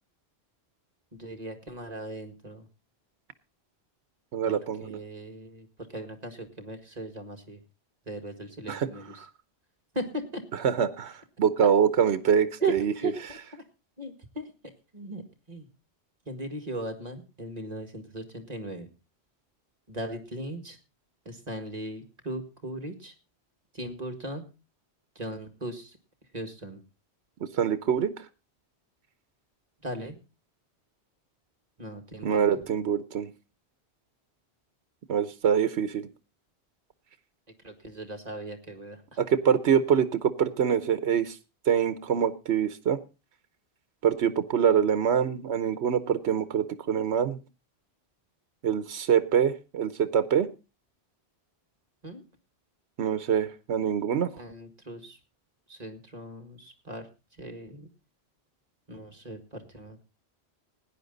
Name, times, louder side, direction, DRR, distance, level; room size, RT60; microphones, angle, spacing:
voice 1, 1.1-2.7 4.4-7.6 8.1-9.2 9.9-10.4 12.6-13.6 14.0-14.5 14.9-15.7 16.3-18.9 19.9-20.8 21.3-23.1 23.7-24.5 25.2-26.0 26.3-26.8 29.8-30.2 31.8-32.6 37.6-39.2 52.0-52.2 54.4-55.2 55.7-57.9 58.9-60.0, right 2 dB, 40° right, 5 dB, 2.0 m, -38 dB
voice 2, 4.3-5.0 8.7-8.9 10.6-12.9 27.5-28.3 32.2-33.3 35.1-36.1 39.2-41.4 41.7-43.0 44.0-47.4 48.6-50.5 53.0-54.3, right 8 dB, 85° right, 12 dB, 1.1 m, -25 dB
16.5 x 10.0 x 3.9 m, 0.29 s
omnidirectional pair, 1.1 m